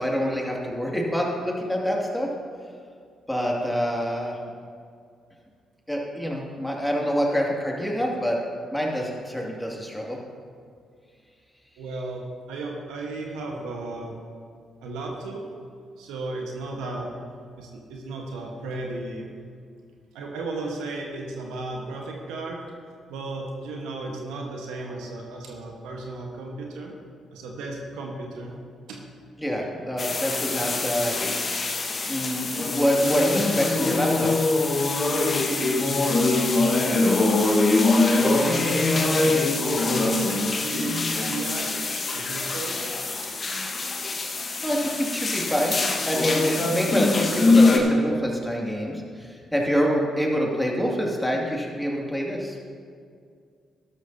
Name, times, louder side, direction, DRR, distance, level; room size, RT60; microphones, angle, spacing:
voice 1, 0.0-2.3 3.3-4.4 5.9-8.4 8.7-10.2 29.4-31.2 31.6-31.7 32.0-34.4 44.6-45.7 46.0-52.6, equal, 5° left, -2 dB, 2.4 m, -26 dB
voice 2, 11.8-14.2 14.8-15.4 16.0-17.1 17.6-19.3 20.1-22.6 23.1-26.9 27.3-28.5 28.9-29.0 35.8-37.2 38.1-39.3 39.7-41.7 42.1-42.9 43.2-43.3, right 2 dB, 75° right, 0 dB, 1.3 m, -35 dB
sound 1, 30.0-47.8, left 3 dB, 45° left, 1.5 m, -23 dB
12.5 x 12.5 x 2.8 m, 2.2 s
hypercardioid pair, 45°, 0 cm